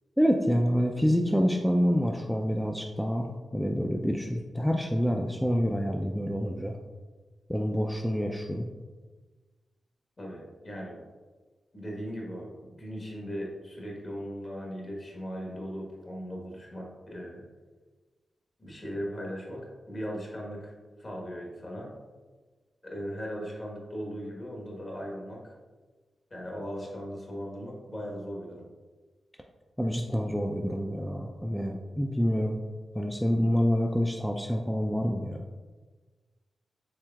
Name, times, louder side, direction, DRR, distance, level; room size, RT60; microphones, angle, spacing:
voice 1, 0.2-6.7 7.5-8.7 29.8-32.6 32.9-35.4, equal, ahead, 2 dB, 0.4 m, -27 dB
voice 2, 10.2-11.0 11.7-17.4 18.6-20.7 21.0-21.9 22.8-25.5 26.3-28.7, equal, 45° left, -2 dB, 1.2 m, -38 dB
4.6 x 3.3 x 2.3 m, 1.3 s
supercardioid pair, 40°, 0 cm